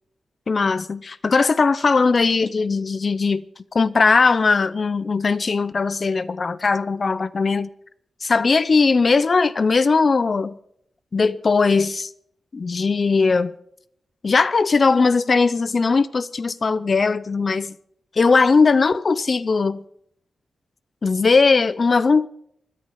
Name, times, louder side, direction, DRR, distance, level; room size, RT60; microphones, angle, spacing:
voice 1, 0.5-3.4 3.7-7.7 8.2-10.6 11.1-12.1 12.5-13.6 14.2-17.8 18.2-19.8 21.0-22.3, left 4 dB, 45° left, 0.5 m, -19 dB
25.5 x 10.5 x 4.8 m
wide cardioid pair, 110°, 0 cm